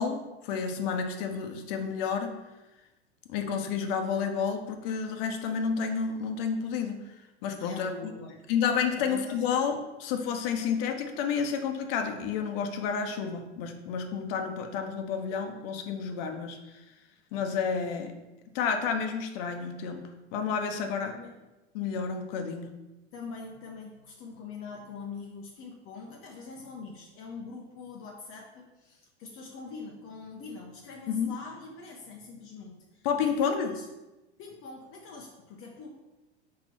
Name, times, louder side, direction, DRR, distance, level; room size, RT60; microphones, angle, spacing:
voice 1, 0.0-2.3 3.3-7.0 7.4-7.9 8.5-16.6 17.3-18.1 18.5-21.1 21.7-22.7 31.1-31.3 33.0-33.7, left 6 dB, 55° left, 6 dB, 1.1 m, -30 dB
voice 2, 7.6-8.4 9.0-9.5 21.1-21.4 23.1-33.8 34.4-35.9, left 4 dB, 40° left, 0 dB, 1.0 m, -44 dB
4.8 x 4.5 x 6.0 m, 1.0 s
hypercardioid pair, 105°, 34 cm